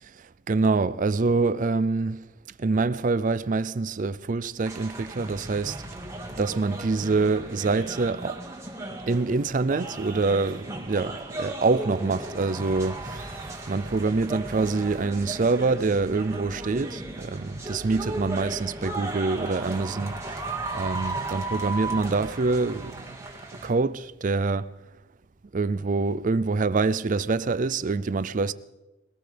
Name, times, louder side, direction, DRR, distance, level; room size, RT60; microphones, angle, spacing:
voice 1, 0.2-2.2 2.6-5.8 6.4-8.4 9.1-20.1 20.7-23.2 23.6-24.7 25.5-28.5, right 3 dB, 45° right, 0.5 m, -25 dB
sound 1, 4.6-23.7, right 2 dB, 15° right, 1.7 m, -36 dB
22.0 x 18.0 x 3.4 m
head